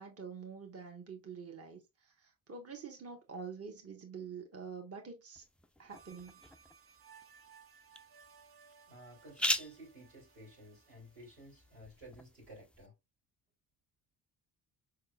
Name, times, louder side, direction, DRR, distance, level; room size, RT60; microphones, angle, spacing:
voice 1, 0.0-5.4 5.8-6.4, right 5 dB, 30° right, 1.4 m, -47 dB
sound 1, 5.4-12.9, left 1 dB, ahead, 0.5 m, -42 dB
sound 2, 5.9-11.8, right 6 dB, 50° right, 1.1 m, -61 dB
voice 2, 8.9-12.9, right 1 dB, 90° right, 2.9 m, -54 dB
4.8 x 3.6 x 2.4 m
hypercardioid pair, 40°, 47 cm